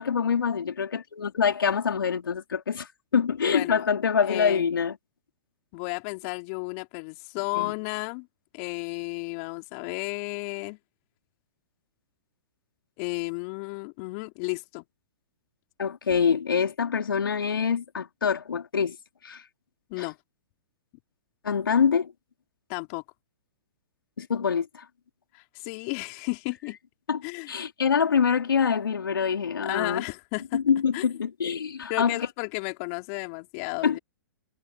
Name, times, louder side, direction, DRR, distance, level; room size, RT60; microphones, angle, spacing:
voice 1, 0.0-5.0 7.5-7.7 15.8-19.0 19.2-19.4 20.0-20.1 21.4-22.1 24.2-24.8 27.1-27.2 27.5-30.0 30.5-32.2 33.8-34.0, left 6 dB, 85° left, 4.3 m, -25 dB
voice 2, 3.5-3.9 4.2-4.7 5.7-8.3 8.5-10.8 13.0-14.8 19.9-20.2 22.7-23.0 25.3-26.8 27.2-27.5 29.6-30.6 30.9-31.0 31.9-34.0, left 30 dB, 40° left, 3.1 m, -33 dB
hypercardioid pair, 125°, 11 cm